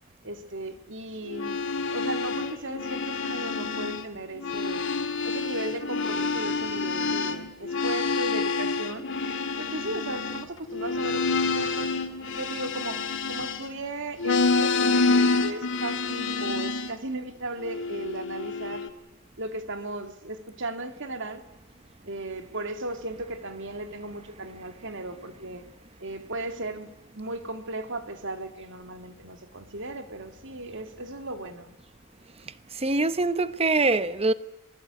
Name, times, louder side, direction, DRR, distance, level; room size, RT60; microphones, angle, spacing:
voice 1, 0.2-1.6 1.9-4.9 5.2-9.1 9.6-12.0 12.4-13.0 13.3-18.9 19.4-21.4 22.0-25.6 26.0-31.7, right 2 dB, 60° right, 2.4 m, -36 dB
sound 1, 1.3-4.1 4.3-13.8 14.2-17.0 17.6-18.9, left 4 dB, 60° left, 2.2 m, -28 dB
voice 2, 32.8-34.3, right 3 dB, 30° right, 0.9 m, -23 dB
27.0 x 20.0 x 8.3 m
head